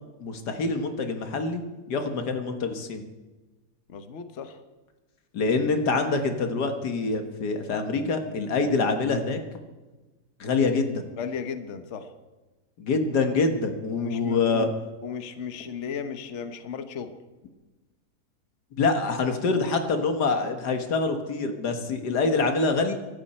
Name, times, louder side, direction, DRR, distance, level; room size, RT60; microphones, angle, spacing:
voice 1, 0.2-1.6 1.9-3.0 5.3-9.4 10.4-11.1 12.8-14.7 18.8-22.9, left 4 dB, 90° left, 6 dB, 2.1 m, -25 dB
voice 2, 3.9-4.6 11.2-12.1 13.9-14.7 15.0-17.1, left 6 dB, 50° left, 9 dB, 1.2 m, -35 dB
24.5 x 12.5 x 4.4 m, 1.2 s
omnidirectional pair, 1.7 m